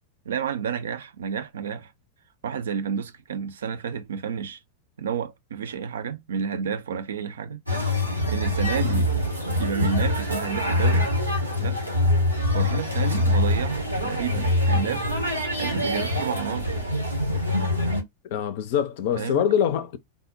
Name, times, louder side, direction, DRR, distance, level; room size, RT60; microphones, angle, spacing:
voice 1, 0.3-1.9 2.4-4.6 5.0-7.6 8.3-9.1 9.6-11.1 11.6-11.8 12.5-15.1 15.5-16.7 19.2-19.5, right 7 dB, 65° right, 0.4 m, -30 dB
sound 1, 7.7-18.0, left 1 dB, 90° right, 0.9 m, -24 dB
voice 2, 18.3-20.0, left 9 dB, 50° left, 0.4 m, -24 dB
3.5 x 2.1 x 2.5 m
figure-of-eight pair, 90°, 0 cm